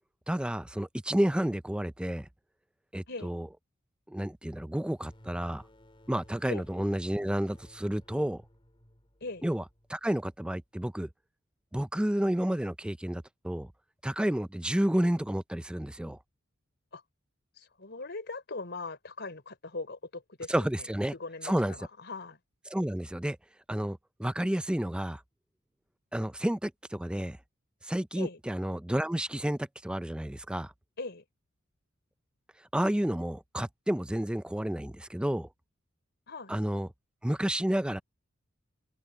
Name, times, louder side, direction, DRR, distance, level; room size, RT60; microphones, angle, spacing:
voice 1, 0.3-2.3 2.9-3.5 4.1-5.6 6.1-8.4 9.4-9.6 9.9-11.1 11.7-13.7 14.0-16.2 20.5-21.1 21.4-21.9 22.7-23.4 23.7-25.2 26.1-27.4 27.8-30.7 32.7-35.5 36.5-36.9 37.2-38.0, right 1 dB, 5° right, 0.4 m, -30 dB
sound 1, 4.9-10.4, equal, 25° left, 3.5 m, -57 dB
voice 2, 17.6-20.5 21.1-22.4 28.1-28.4 31.0-31.2 36.3-36.5, left 3 dB, 55° left, 4.1 m, -40 dB
head